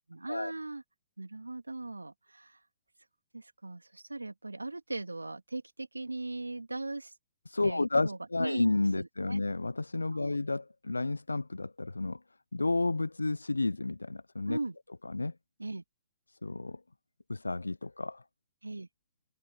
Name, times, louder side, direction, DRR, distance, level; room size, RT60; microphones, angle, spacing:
voice 1, 0.1-0.8 1.2-2.6 3.3-7.1 7.6-8.7 9.0-9.4 10.1-10.4 14.5-14.8 15.6-15.8 18.6-18.9, right 2 dB, 85° right, 3.1 m, -39 dB
voice 2, 7.5-12.2 12.5-14.6 15.0-15.3 16.4-16.8 17.3-18.2, left 2 dB, 85° left, 0.8 m, -31 dB
figure-of-eight pair, 115°, 0 cm